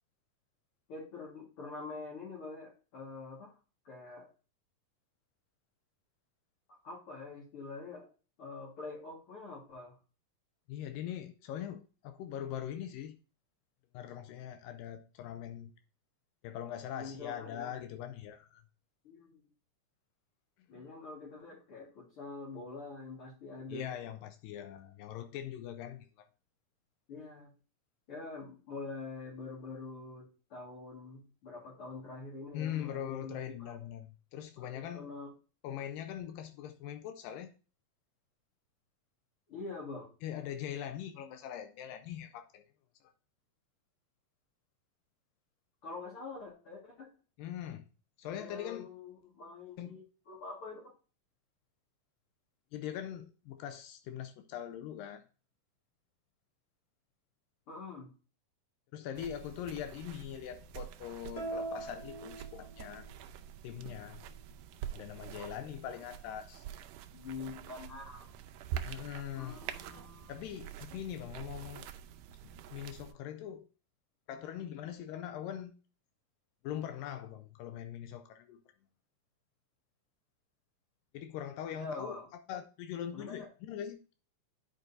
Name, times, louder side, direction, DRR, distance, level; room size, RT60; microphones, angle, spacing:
voice 1, 0.9-3.5 3.8-4.3 6.7-8.1 8.4-10.0 16.9-17.7 19.0-19.5 20.7-23.9 27.1-27.5 28.1-33.7 34.6-35.3 39.5-40.1 45.8-47.1 48.3-50.9 57.7-58.1 65.4-65.5 67.1-68.3 69.3-70.4 81.7-82.3 83.1-83.5, left 3 dB, 45° left, 2.4 m, -45 dB
voice 2, 10.7-13.2 13.9-15.7 16.4-18.6 20.7-20.9 23.7-26.3 32.5-35.1 35.6-37.5 40.2-42.6 43.0-43.1 47.4-47.9 48.2-48.9 49.8-50.0 52.7-55.2 58.9-63.1 63.6-64.2 64.9-66.6 68.8-69.6 70.3-71.9 72.4-73.7 74.3-75.7 76.6-78.6 81.1-82.2 82.5-84.1, left 10 dB, 85° left, 2.2 m, -42 dB
sound 1, 59.1-73.1, right 10 dB, 80° right, 2.0 m, -46 dB
sound 2, 61.4-63.2, right 2 dB, 10° left, 2.5 m, -41 dB
10.5 x 5.2 x 2.7 m
omnidirectional pair, 4.0 m